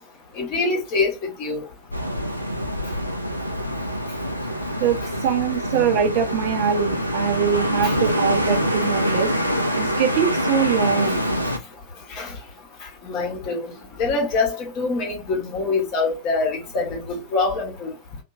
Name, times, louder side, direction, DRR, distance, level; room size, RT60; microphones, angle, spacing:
voice 1, 0.4-1.7 7.8-7.9 12.1-12.3 13.0-13.7 14.0-17.9, left 3 dB, 40° left, 1.3 m, -24 dB
sound 1, 1.9-11.6, equal, 90° right, 0.4 m, -25 dB
voice 2, 4.8-9.3 9.8-11.2, right 7 dB, 45° right, 0.6 m, -23 dB
2.9 x 2.5 x 2.7 m
figure-of-eight pair, 90°, 0 cm